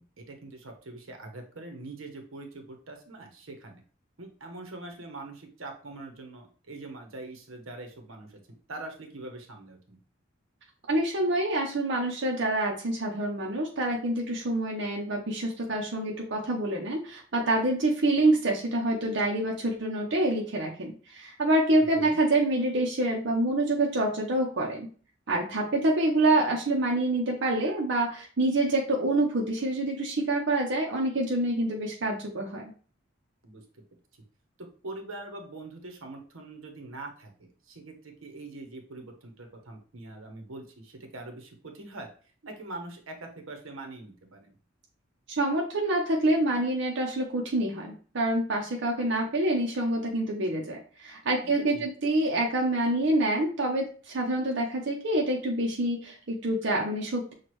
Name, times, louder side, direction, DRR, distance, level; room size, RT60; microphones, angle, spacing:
voice 1, 0.0-3.8 4.2-8.4 8.7-10.0 21.9-22.2 33.4-33.8 34.6-42.1 42.4-44.5 51.4-51.9, right 2 dB, 85° right, 4 dB, 0.9 m, -43 dB
voice 2, 10.9-24.9 25.3-32.7 45.4-57.3, right 1 dB, 60° right, -1 dB, 0.7 m, -27 dB
6.1 x 2.4 x 3.0 m, 0.41 s
head